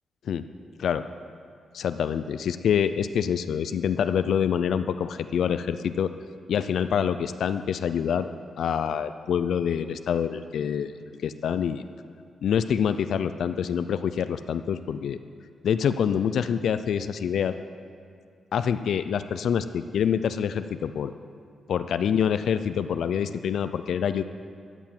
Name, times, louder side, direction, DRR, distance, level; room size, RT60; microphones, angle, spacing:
voice 1, 1.7-6.1 6.5-8.3 8.6-11.8 12.4-15.2 15.6-17.5 18.5-21.1 21.7-24.2, left 8 dB, 70° left, 11 dB, 0.5 m, -26 dB
13.0 x 8.2 x 7.5 m, 2.3 s
wide cardioid pair, 145°, 0 cm